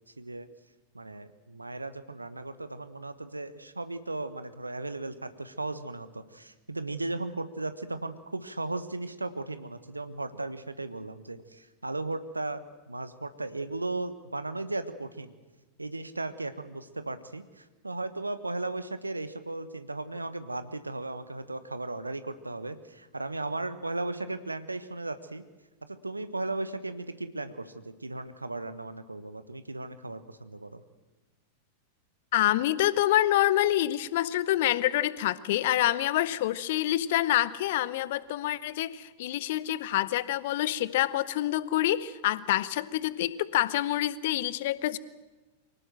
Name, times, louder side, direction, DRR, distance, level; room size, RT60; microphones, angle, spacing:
voice 1, 0.2-0.5 0.9-12.6 12.9-15.3 15.8-25.4 25.9-27.7 28.0-30.8, right 2 dB, 80° right, 12 dB, 1.2 m, -36 dB
voice 2, 32.3-45.0, left 14 dB, 55° left, 18 dB, 0.8 m, -27 dB
24.0 x 18.0 x 7.6 m, 1.2 s
figure-of-eight pair, 90°, 0 cm